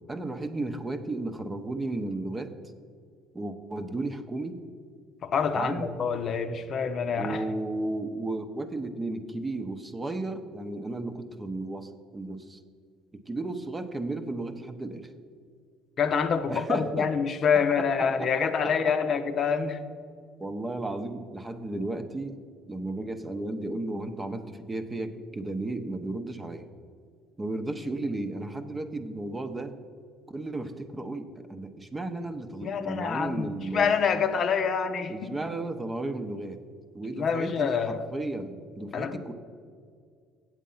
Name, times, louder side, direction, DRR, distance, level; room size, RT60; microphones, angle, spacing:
voice 1, 0.1-2.5 3.3-4.6 5.5-5.9 7.1-12.6 13.1-15.1 16.5-17.1 17.7-18.9 20.4-22.4 22.7-26.7 27.4-29.8 30.3-33.9 35.1-36.6 36.9-39.3, right 2 dB, 20° right, 8 dB, 0.8 m, -34 dB
voice 2, 5.2-7.4 16.0-19.9 32.6-35.3 37.1-38.1 38.9-39.3, left 6 dB, 50° left, 8 dB, 0.7 m, -26 dB
8.0 x 7.6 x 5.5 m, 2.1 s
supercardioid pair, 90°, 0 cm